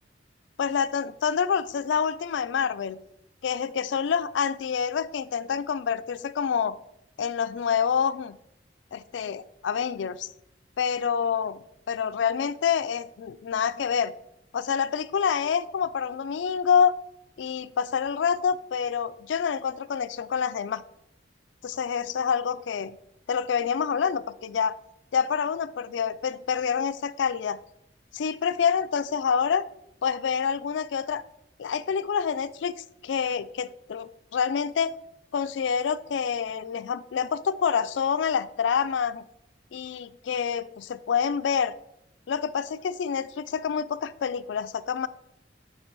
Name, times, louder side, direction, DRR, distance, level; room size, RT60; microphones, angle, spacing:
voice 1, 0.6-3.0 3.4-6.8 7.2-8.4 8.9-10.3 10.8-11.6 11.9-14.1 14.5-16.9 17.4-20.8 21.6-23.0 23.3-24.7 25.1-27.6 28.1-29.6 30.0-31.2 31.6-32.8 33.0-34.9 35.3-39.2 39.7-41.7 42.3-45.1, left 7 dB, 85° left, 15 dB, 0.4 m, -27 dB
8.6 x 3.3 x 4.6 m, 0.83 s
head